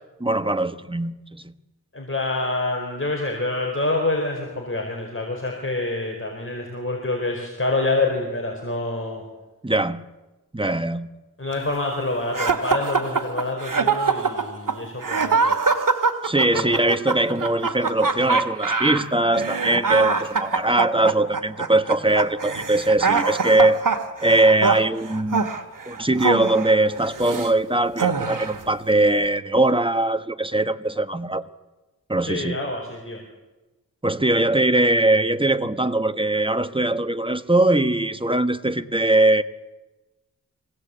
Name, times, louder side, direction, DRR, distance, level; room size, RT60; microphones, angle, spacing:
voice 1, 0.2-1.5 9.6-10.0 10.5-11.1 16.2-23.8 24.2-25.5 25.9-31.4 32.1-32.6 34.0-39.4, right 2 dB, 15° right, 10 dB, 1.3 m, -21 dB
voice 2, 1.9-9.2 11.4-15.6 16.5-16.8 32.3-33.2, left 2 dB, 35° left, 1 dB, 4.5 m, -27 dB
sound 1, 12.3-27.5 28.0-28.6, right 5 dB, 60° right, 2.1 m, -24 dB
24.5 x 18.0 x 8.4 m, 1.1 s
wide cardioid pair, 55°, 36 cm